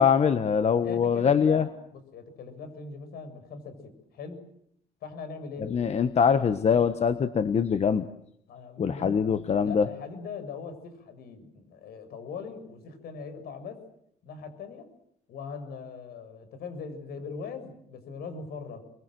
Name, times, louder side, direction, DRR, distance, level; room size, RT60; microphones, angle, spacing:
voice 1, 0.0-1.7 5.7-8.1 8.8-9.8, left 7 dB, 40° left, 11 dB, 1.4 m, -23 dB
voice 2, 0.8-4.4 5.0-6.0 8.5-9.2 9.6-13.8 14.2-14.9 15.3-18.8, left 5 dB, 65° left, 10 dB, 6.8 m, -41 dB
29.0 x 22.5 x 7.8 m, 0.72 s
cardioid pair, 110°, 17 cm